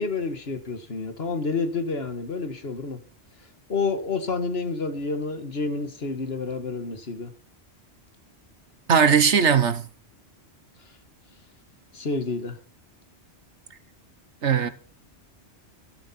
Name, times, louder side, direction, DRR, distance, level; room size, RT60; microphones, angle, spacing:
voice 1, 0.0-3.0 3.7-7.3 11.9-12.5, left 4 dB, 60° left, 1.8 m, -29 dB
voice 2, 8.9-9.8 14.4-14.7, right 7 dB, 85° right, 1.5 m, -19 dB
12.0 x 11.0 x 4.3 m
omnidirectional pair, 1.2 m